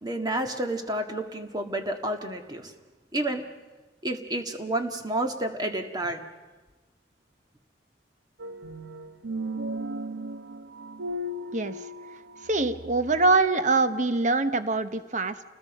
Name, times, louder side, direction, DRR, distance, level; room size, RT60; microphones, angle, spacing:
voice 1, 0.0-2.7 3.1-3.5 4.0-6.2, right 1 dB, 20° right, 5 dB, 1.8 m, -30 dB
sound 1, 8.4-13.4, right 1 dB, 85° right, 1.2 m, -36 dB
voice 2, 11.5-11.8 12.4-15.4, right 3 dB, 40° right, 11 dB, 1.0 m, -24 dB
29.0 x 20.0 x 5.4 m, 1.2 s
head